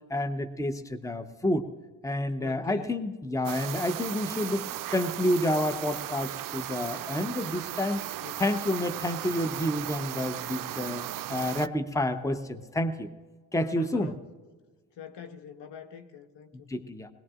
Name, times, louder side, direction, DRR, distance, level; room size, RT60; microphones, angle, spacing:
voice 1, 0.1-1.7 2.0-8.0 8.4-11.0 11.3-13.1 13.5-14.1 16.7-17.1, left 1 dB, 5° left, 0.9 m, -29 dB
voice 2, 2.4-2.9 8.2-8.4 13.7-14.2 15.0-16.7, left 7 dB, 60° left, 1.3 m, -44 dB
sound 1, 3.4-11.7, right 13 dB, 45° right, 0.5 m, -36 dB
21.0 x 18.5 x 2.5 m
hypercardioid pair, 45°, 49 cm